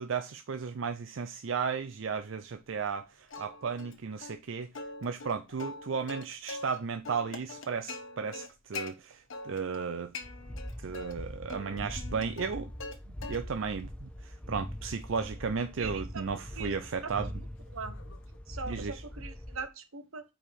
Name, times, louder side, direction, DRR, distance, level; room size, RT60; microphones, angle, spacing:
voice 1, 0.0-4.7 5.0-10.1 10.8-12.7 13.3-17.4 18.7-19.0, right 5 dB, 65° right, 0.5 m, -34 dB
Plucked string instrument, 3.3-3.9 4.2-4.4 4.8-6.8 7.1-8.9 9.3-9.8 10.1-11.1 11.5-13.0 13.2-13.7 14.1-18.4, left 3 dB, 65° left, 1.2 m, -44 dB
sound 1, 10.2-19.7, equal, 5° left, 0.4 m, -42 dB
voice 2, 15.8-16.2 16.6-16.7 17.0-17.1 17.7-17.9 18.5-20.2, right 4 dB, 85° right, 1.0 m, -40 dB
5.0 x 4.7 x 5.5 m
head